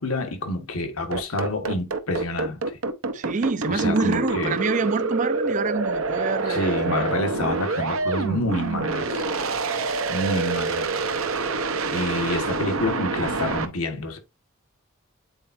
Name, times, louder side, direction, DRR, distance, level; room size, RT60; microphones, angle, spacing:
voice 1, 0.0-2.6 3.7-4.6 6.5-9.2 10.1-10.9 11.9-14.2, left 1 dB, 85° left, 1.4 m, -28 dB
sound 1, 1.1-13.7, right 3 dB, 80° right, 0.8 m, -26 dB
voice 2, 3.1-7.1, right 4 dB, 35° right, 0.4 m, -26 dB
8.8 x 4.4 x 2.6 m
head